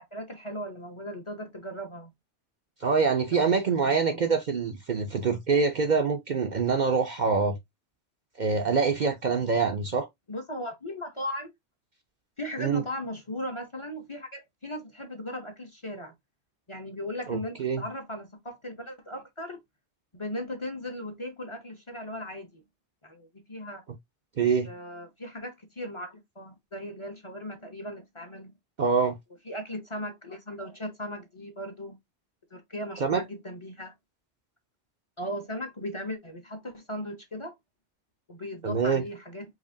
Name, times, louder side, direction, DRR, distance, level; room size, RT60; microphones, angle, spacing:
voice 1, 0.0-2.1 3.3-4.3 10.3-11.5 12.4-16.1 16.7-19.6 20.1-22.6 23.0-23.8 24.6-28.5 29.5-32.0 32.5-33.9 35.2-37.5 38.3-39.4, left 1 dB, 30° left, 0.7 m, -37 dB
voice 2, 2.8-7.6 8.4-10.1 12.6-12.8 17.3-17.8 24.4-24.7 28.8-29.2 33.0-33.2 38.6-39.0, right 5 dB, 50° right, 0.6 m, -25 dB
5.0 x 2.8 x 2.6 m
omnidirectional pair, 1.2 m